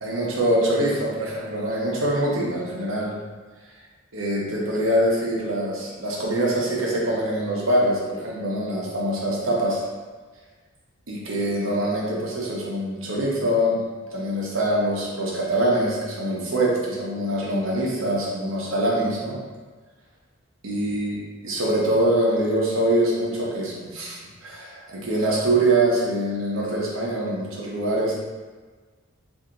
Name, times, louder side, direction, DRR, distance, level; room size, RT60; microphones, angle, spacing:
voice 1, 0.0-3.1 4.1-9.8 11.1-13.8 14.1-19.4 20.6-21.2 21.4-28.1, right 1 dB, 90° right, -4 dB, 0.9 m, -24 dB
2.8 x 2.7 x 3.7 m, 1.4 s
head